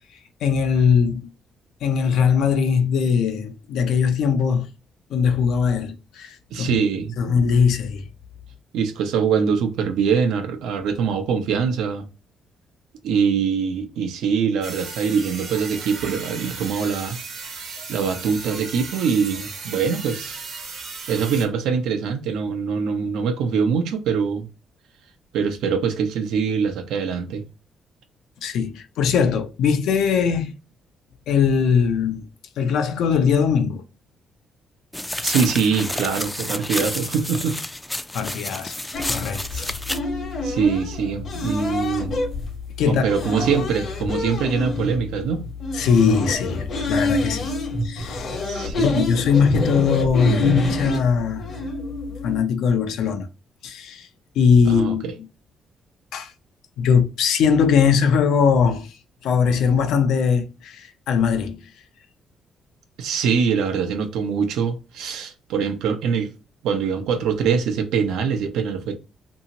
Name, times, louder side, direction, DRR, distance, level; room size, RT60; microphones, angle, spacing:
voice 1, 0.4-1.3 1.8-4.7 5.1-6.8 7.2-8.1 28.4-30.5 31.3-32.3 32.6-33.8 38.1-39.7 42.8-43.1 43.5-43.7 45.7-47.5 47.8-48.4 48.8-51.4 52.2-53.3 53.6-54.1 54.4-55.1 56.1-56.3 56.8-59.0 59.2-61.7, left 6 dB, 80° left, 0.6 m, -20 dB
voice 2, 6.5-7.4 8.7-12.1 13.0-17.2 17.9-20.4 21.1-24.5 25.3-27.4 35.2-37.6 39.5-39.6 40.4-42.1 42.9-45.4 48.4-49.0 54.7-55.1 63.0-66.3 66.6-69.0, right 6 dB, 90° right, 0.6 m, -23 dB
sound 1, 14.6-21.4, right 4 dB, 70° right, 1.1 m, -35 dB
sound 2, 34.9-40.0, left 1 dB, 10° left, 0.3 m, -29 dB
sound 3, 38.9-52.4, left 1 dB, 60° left, 1.0 m, -27 dB
2.8 x 2.7 x 2.8 m
cardioid pair, 90°, 0 cm